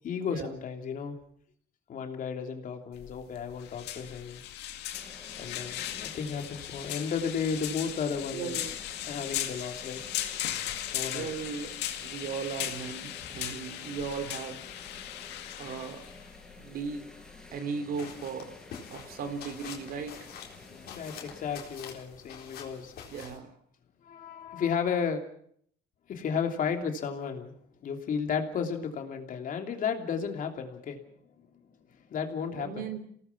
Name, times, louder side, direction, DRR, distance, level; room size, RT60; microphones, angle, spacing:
voice 1, 0.0-1.2 1.9-4.4 5.4-8.7 9.0-10.0 10.9-11.3 20.7-23.0 24.0-25.2 26.1-27.5 27.8-31.0 32.1-32.8, left 6 dB, 55° left, 4 dB, 3.2 m, -33 dB
sound 1, 2.9-17.6, left 12 dB, 85° left, 2.2 m, -38 dB
Roman baths water flows, 4.9-21.6, left 1 dB, 5° left, 6.1 m, -51 dB
voice 2, 8.3-8.8 11.0-14.6 15.6-16.1 16.6-17.1 17.5-18.5 18.9-20.2 23.1-23.5 32.5-33.0, right 5 dB, 65° right, 8 dB, 3.4 m, -37 dB
sound 2, 17.9-23.4, left 8 dB, 70° left, 4.0 m, -46 dB
28.0 x 18.0 x 6.0 m, 0.65 s
cardioid pair, 110°, 17 cm